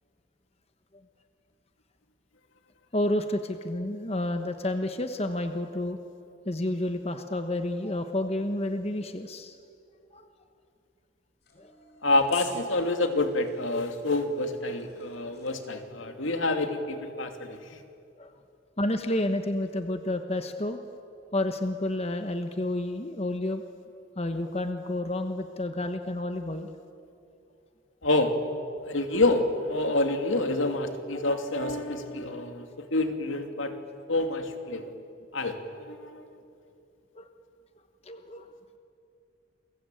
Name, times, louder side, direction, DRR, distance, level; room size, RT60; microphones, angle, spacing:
voice 1, 2.9-6.0 6.4-9.6 10.1-10.3 11.6-11.7 18.2-18.3 18.8-20.8 21.3-23.6 24.2-26.7 37.1-37.2 38.0-38.5, left 1 dB, 30° left, 7 dB, 1.2 m, -30 dB
sound 1, 11.4-15.7, left 6 dB, 55° left, 5.6 m, -50 dB
voice 2, 12.0-17.8 28.0-28.4 28.8-33.7 34.1-34.9 35.3-36.2, left 2 dB, 75° left, 6 dB, 2.6 m, -28 dB
29.0 x 22.5 x 9.1 m, 2.6 s
head